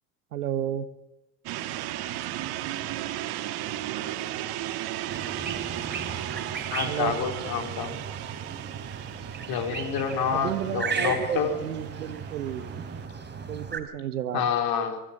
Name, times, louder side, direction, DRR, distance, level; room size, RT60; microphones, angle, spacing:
voice 1, 0.3-0.9 6.8-7.2 10.3-12.7 13.5-14.7, right 10 dB, 90° right, 12 dB, 1.1 m, -32 dB
sound 1, 1.5-13.1, right 13 dB, 55° right, 1.9 m, -35 dB
sound 2, 5.1-13.8, right 5 dB, 25° right, 3.7 m, -36 dB
voice 2, 6.7-7.9 9.5-11.6 14.3-15.0, left 7 dB, 55° left, 6 dB, 4.0 m, -28 dB
24.0 x 12.5 x 8.8 m, 0.97 s
hypercardioid pair, 75°, 44 cm